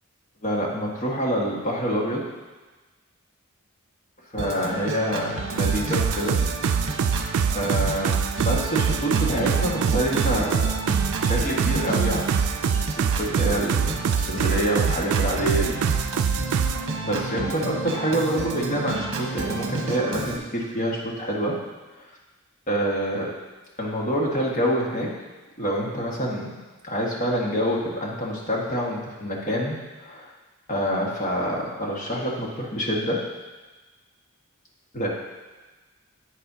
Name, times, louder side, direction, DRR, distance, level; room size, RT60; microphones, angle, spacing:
voice 1, 0.4-2.3 4.3-6.4 7.5-10.7 11.2-12.4 12.7-15.8 17.0-21.6 22.7-23.3 23.8-25.1 25.6-26.6 26.8-30.3 30.7-33.3 34.9-35.1, equal, 35° left, -3 dB, 1.7 m, -26 dB
Organ, 4.4-20.4, right 3 dB, 60° right, 1.0 m, -31 dB
sound 1, 5.6-16.8, right 6 dB, 80° right, 0.4 m, -24 dB
11.0 x 8.3 x 2.8 m, 1.2 s
head